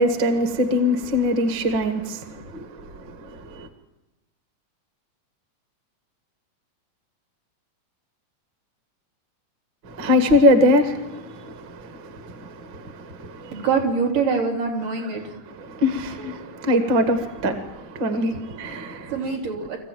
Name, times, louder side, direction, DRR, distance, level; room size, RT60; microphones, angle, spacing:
voice 1, 0.0-3.7 9.8-13.7 15.7-19.1, left 1 dB, 40° right, 2.0 m, -23 dB
voice 2, 13.5-15.3 18.3-18.4 19.1-19.8, right 5 dB, 70° right, 5.2 m, -24 dB
25.5 x 15.0 x 9.2 m
omnidirectional pair, 3.9 m